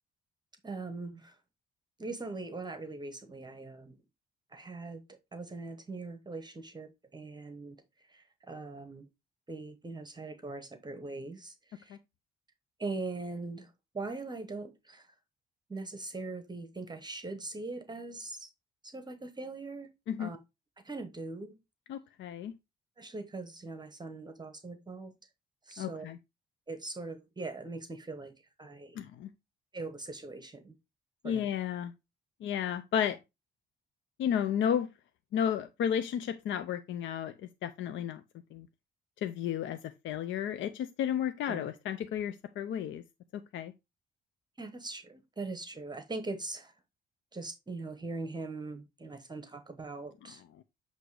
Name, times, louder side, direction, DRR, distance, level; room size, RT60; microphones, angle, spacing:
voice 1, 0.6-1.4 2.0-4.0 4.5-7.8 8.1-9.1 9.5-12.0 12.8-15.1 15.7-18.5 18.8-19.9 20.2-20.4 20.8-21.6 23.0-25.1 25.7-26.1 26.7-28.3 28.6-29.0 29.7-30.7 31.2-31.5 41.5-41.7 44.6-46.7 47.3-50.4, right 3 dB, 20° right, 0.9 m, -41 dB
voice 2, 21.9-22.5 25.8-26.2 29.0-29.3 31.2-31.9 32.4-33.2 34.2-34.9 35.3-37.3 37.6-38.2 38.5-38.7 39.2-39.8 40.0-43.0 43.5-43.7 50.2-50.6, left 9 dB, 70° left, 0.5 m, -32 dB
7.9 x 2.7 x 4.6 m
cardioid pair, 90°, 20 cm